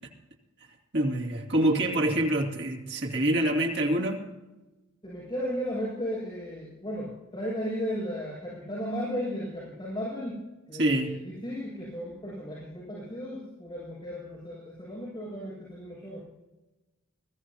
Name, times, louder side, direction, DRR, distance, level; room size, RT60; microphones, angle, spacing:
voice 1, 0.9-4.2 10.7-11.1, right 1 dB, 55° right, 0 dB, 2.5 m, -26 dB
voice 2, 1.5-2.0 5.0-10.4 10.7-16.2, equal, 25° left, -7 dB, 6.4 m, -35 dB
21.5 x 15.0 x 2.9 m, 1.1 s
head